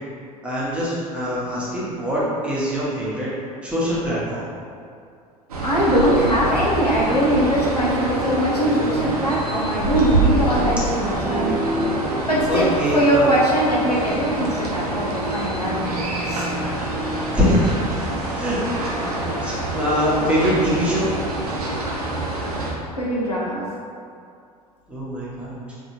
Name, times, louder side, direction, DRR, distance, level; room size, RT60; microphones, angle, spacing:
voice 1, 0.4-3.3 3.6-4.4 12.5-13.3 17.3-17.7 18.4-18.6 19.0-19.1 19.4-21.1 24.9-25.6, equal, 5° right, -9 dB, 1.1 m, -23 dB
sound 1, 5.5-22.7, right 2 dB, 75° right, 0.6 m, -25 dB
voice 2, 5.6-11.6 12.3-15.8 16.2-16.5 22.9-23.7, equal, 90° left, -6 dB, 0.6 m, -21 dB
3.9 x 2.6 x 3.0 m, 2.4 s
figure-of-eight pair, 75°, 19 cm